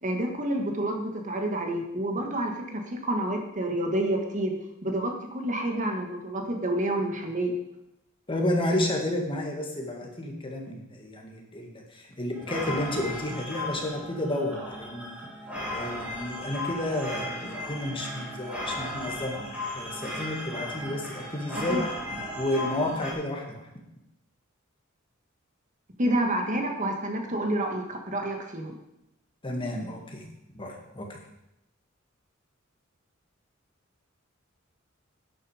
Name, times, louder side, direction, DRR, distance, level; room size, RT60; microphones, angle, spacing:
voice 1, 0.0-4.5 4.8-7.5 21.7-21.8 26.0-28.8, right 1 dB, 40° right, 3 dB, 1.7 m, -29 dB
voice 2, 8.3-15.3 15.5-23.7 29.4-30.3 30.5-31.2, left 1 dB, 25° left, 1 dB, 2.0 m, -31 dB
sound 1, 12.3-23.1, left 1 dB, 5° right, 3.5 m, -36 dB
11.5 x 10.0 x 5.0 m, 0.85 s
head